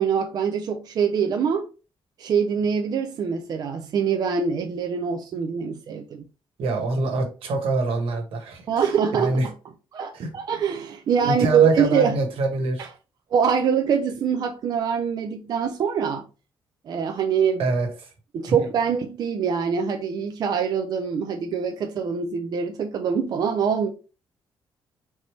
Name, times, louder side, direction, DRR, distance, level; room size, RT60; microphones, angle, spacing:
voice 1, 0.0-1.7 2.2-6.2 8.7-9.5 9.9-12.2 12.8-12.9 13.3-16.3 16.9-17.6 18.3-23.9, right 7 dB, 45° right, 0.5 m, -24 dB
voice 2, 6.6-8.9 9.2-9.5 10.1-10.3 11.2-12.9 17.6-17.9 18.6-18.7, right 2 dB, 85° right, 1.4 m, -25 dB
4.2 x 3.3 x 3.2 m
cardioid pair, 175°, 9 cm